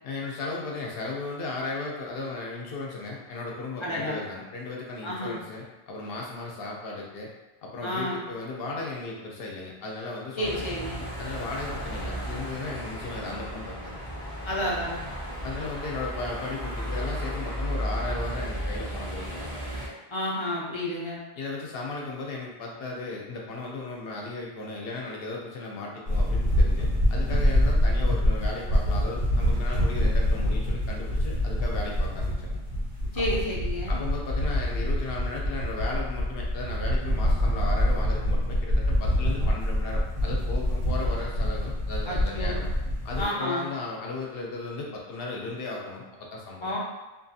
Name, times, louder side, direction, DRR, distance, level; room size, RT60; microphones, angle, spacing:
voice 1, 0.0-7.3 7.6-10.6 11.2-14.0 15.4-19.5 21.4-32.6 33.1-33.4 33.9-42.7 43.0-46.0 46.3-46.8, left 3 dB, 70° left, -1 dB, 0.8 m, -36 dB
voice 2, 3.8-4.2 5.0-5.4 7.8-8.3 10.4-11.0 14.5-15.1 20.1-21.2 33.1-34.0 42.1-42.6 43.2-43.7 46.6-46.8, left 1 dB, 40° left, -5 dB, 0.4 m, -30 dB
sound 1, 10.4-19.9, equal, 25° right, 0.6 m, -34 dB
sound 2, 26.1-43.2, equal, 80° right, 1.2 m, -25 dB
2.6 x 2.4 x 2.6 m, 1.1 s
omnidirectional pair, 1.0 m